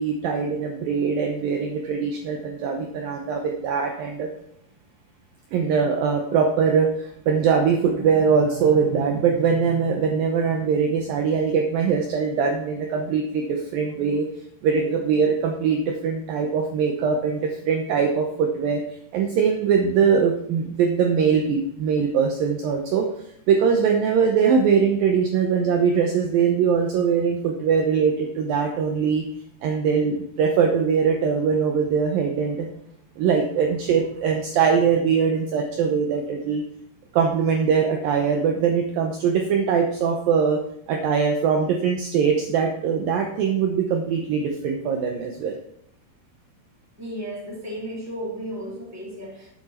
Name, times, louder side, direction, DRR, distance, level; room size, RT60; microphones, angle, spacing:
voice 1, 0.0-4.3 5.5-14.3 14.6-18.8 19.1-23.1 23.5-29.2 29.6-32.7 33.2-36.6 37.1-40.6 40.9-45.6, right 6 dB, 80° right, 3 dB, 2.0 m, -22 dB
voice 2, 47.0-49.5, equal, 5° right, -3 dB, 2.2 m, -34 dB
13.0 x 8.6 x 4.3 m, 0.73 s
omnidirectional pair, 5.5 m